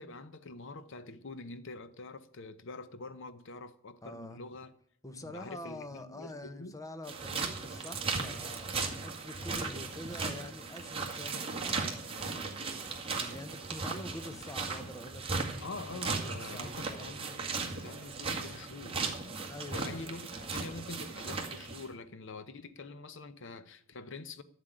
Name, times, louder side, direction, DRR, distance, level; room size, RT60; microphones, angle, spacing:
voice 1, 0.0-4.7 5.1-6.8 15.6-19.1 19.7-24.4, left 3 dB, 60° left, 0.8 m, -45 dB
voice 2, 4.0-4.4 5.0-8.7 9.0-15.6 15.9-17.1 19.5-20.1 20.4-20.5, left 1 dB, 15° left, 0.9 m, -46 dB
sound 1, 7.0-21.9, right 4 dB, 25° right, 2.0 m, -37 dB
13.0 x 7.5 x 9.1 m
head